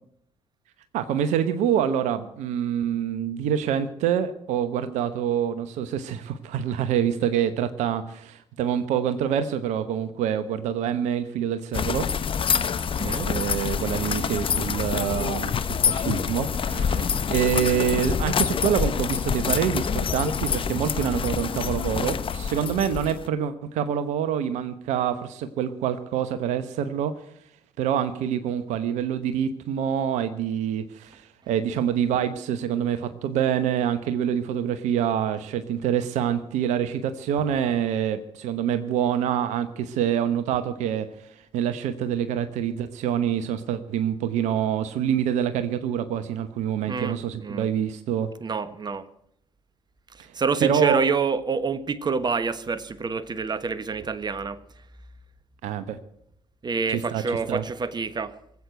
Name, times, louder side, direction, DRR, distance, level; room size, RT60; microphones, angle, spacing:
voice 1, 0.9-12.1 13.0-27.1 27.8-41.1 41.5-48.3 50.2-50.3 50.6-51.0 55.6-56.0 56.9-57.2 57.5-57.6, right 9 dB, 70° right, 11 dB, 1.0 m, -26 dB
sound 1, 11.7-23.3, left 7 dB, 45° left, 1.0 m, -26 dB
voice 2, 13.0-13.3 15.2-15.3 16.7-17.1 46.9-47.7 48.4-49.1 50.1-54.6 56.6-58.3, right 5 dB, 35° right, 13 dB, 1.3 m, -27 dB
20.0 x 8.4 x 7.7 m, 0.70 s
hypercardioid pair, 50°, 13 cm